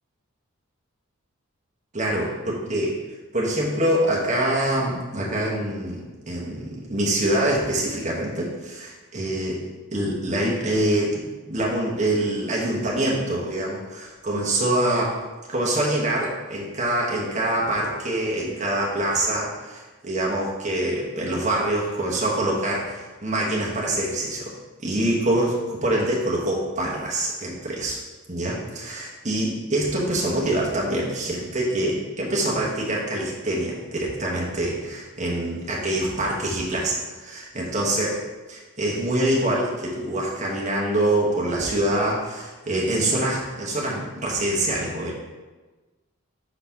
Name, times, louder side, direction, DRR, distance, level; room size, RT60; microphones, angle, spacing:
voice 1, 1.9-3.0 3.3-9.6 9.9-15.2 15.5-24.5 24.8-28.0 28.3-38.2 38.5-45.1, right 1 dB, 30° right, -4 dB, 1.1 m, -25 dB
5.0 x 3.9 x 5.7 m, 1.2 s
head